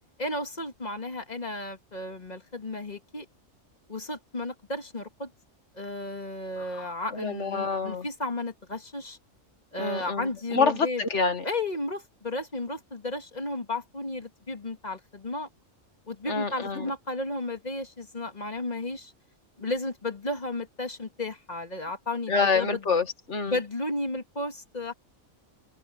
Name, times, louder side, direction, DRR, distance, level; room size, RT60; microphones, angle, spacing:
voice 1, 0.2-3.3 3.9-5.3 5.7-9.2 9.7-11.0 11.4-15.5 16.1-19.1 19.6-22.8 23.5-24.9, left 2 dB, 30° left, 1.9 m, -33 dB
voice 2, 6.6-8.1 9.8-11.4 16.3-16.9 22.3-23.5, left 4 dB, 55° left, 2.0 m, -27 dB
open air
omnidirectional pair, 1.4 m